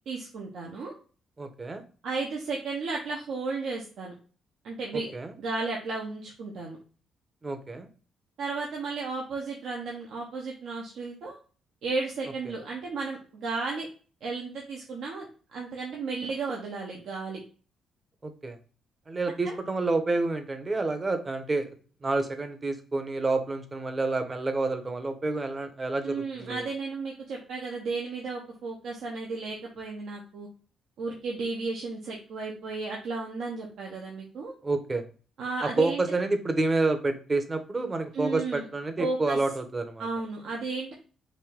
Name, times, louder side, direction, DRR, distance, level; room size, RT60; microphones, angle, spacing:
voice 1, 0.1-0.9 2.0-4.1 4.6-5.1 5.4-6.8 8.4-11.4 11.8-13.9 14.2-17.4 19.4-19.6 26.0-30.5 31.0-34.5 35.4-36.0 38.1-38.7 39.0-39.4 40.0-40.9, right 3 dB, 75° right, -2 dB, 1.0 m, -34 dB
voice 2, 1.4-1.8 5.1-5.3 7.4-7.9 18.2-18.6 19.1-21.7 22.0-26.7 34.6-35.0 35.6-40.1, right 3 dB, 30° right, 8 dB, 0.8 m, -28 dB
5.2 x 2.7 x 3.6 m, 0.38 s
cardioid pair, 90°, 0 cm